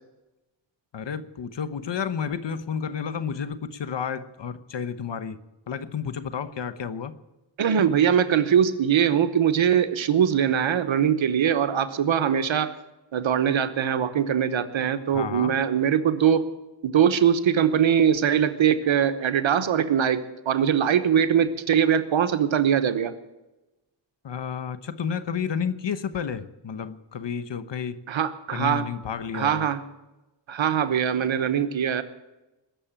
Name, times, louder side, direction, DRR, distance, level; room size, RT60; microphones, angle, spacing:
voice 1, 0.9-5.4 5.7-7.1 15.1-15.5 24.2-28.0 28.5-29.7, left 7 dB, 70° left, 12 dB, 1.1 m, -31 dB
voice 2, 7.6-12.7 13.1-16.5 16.8-23.1 28.1-28.9 29.3-29.8 30.5-32.0, right 8 dB, 90° right, 11 dB, 1.1 m, -22 dB
21.0 x 7.1 x 8.9 m, 1.0 s
cardioid pair, 55°, 45 cm